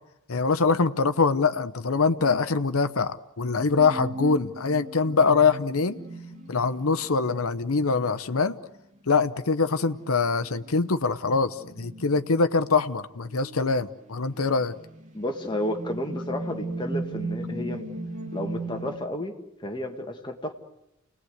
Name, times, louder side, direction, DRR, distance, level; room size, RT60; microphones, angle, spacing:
voice 1, 0.3-6.0 6.5-8.6 9.1-14.8, left 4 dB, 75° left, 12 dB, 0.9 m, -24 dB
sound 1, 3.6-7.5 9.8-9.9 10.7-10.8 11.5-12.6 13.5-13.9 14.6-18.9, right 2 dB, 35° right, 2.4 m, -36 dB
voice 2, 15.1-17.8 18.3-19.3 19.6-20.5, left 1 dB, 20° left, 3 dB, 1.9 m, -32 dB
29.5 x 19.5 x 8.1 m, 0.89 s
head